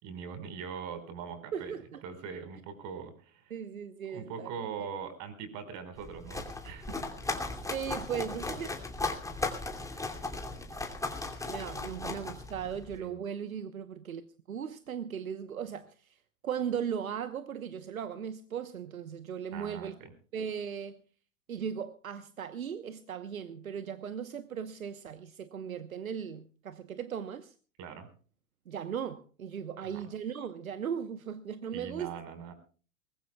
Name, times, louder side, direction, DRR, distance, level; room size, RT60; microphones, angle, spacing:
voice 1, 0.0-1.7 2.0-3.5 4.1-7.0 9.8-10.2 13.0-13.2 19.5-20.1 27.8-28.1 29.8-30.0 31.7-32.5, right 6 dB, 45° right, 5.1 m, -42 dB
voice 2, 1.5-2.0 3.5-4.5 4.8-4.9 7.7-8.7 11.5-16.2 16.4-20.0 20.3-21.0 21.5-27.5 28.7-32.1, right 8 dB, 85° right, 1.1 m, -37 dB
sound 1, 6.0-12.9, left 3 dB, 5° left, 2.7 m, -37 dB
22.5 x 20.5 x 2.3 m
hypercardioid pair, 95°, 41 cm